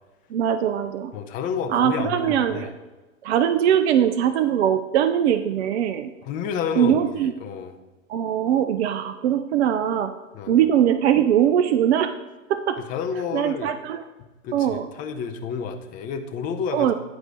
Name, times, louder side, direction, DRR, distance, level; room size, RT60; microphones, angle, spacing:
voice 1, 0.3-1.1 1.7-2.7 3.2-6.1 6.8-7.3 8.1-10.1 10.5-12.1 12.5-12.8 13.3-14.0 14.5-14.9 16.7-16.9, right 9 dB, 55° right, 10 dB, 0.5 m, -21 dB
voice 2, 1.1-2.7 6.2-7.8 10.3-10.6 12.8-13.7 14.4-16.9, left 6 dB, 20° left, 6 dB, 0.6 m, -30 dB
9.6 x 4.7 x 3.9 m, 1.2 s
hypercardioid pair, 110°, 41 cm